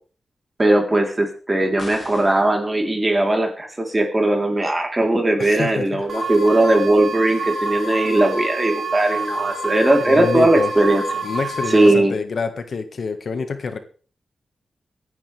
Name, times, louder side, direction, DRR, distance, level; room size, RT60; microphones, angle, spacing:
voice 1, 0.6-11.0 11.7-12.2, right 1 dB, 25° right, 3 dB, 3.8 m, -18 dB
sound 1, 1.8-2.5, left 3 dB, 45° left, 3.1 m, -39 dB
voice 2, 5.4-6.1 9.7-10.7 11.2-13.8, left 5 dB, 65° left, 9 dB, 1.7 m, -27 dB
sound 2, 6.1-11.9, right 3 dB, 60° right, 3.0 m, -28 dB
24.5 x 10.5 x 3.5 m, 0.41 s
wide cardioid pair, 95°, 0 cm